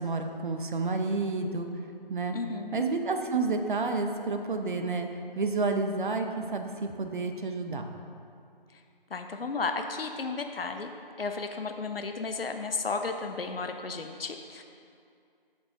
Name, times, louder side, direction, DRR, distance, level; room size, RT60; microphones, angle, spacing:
voice 1, 0.0-1.7 2.1-2.4 2.7-5.1 5.4-7.9, right 3 dB, 60° right, 5 dB, 0.9 m, -30 dB
voice 2, 2.3-2.8 9.1-10.9 11.2-14.6, left 4 dB, 75° left, 6 dB, 0.8 m, -33 dB
10.5 x 7.1 x 3.8 m, 2.4 s
figure-of-eight pair, 165°, 29 cm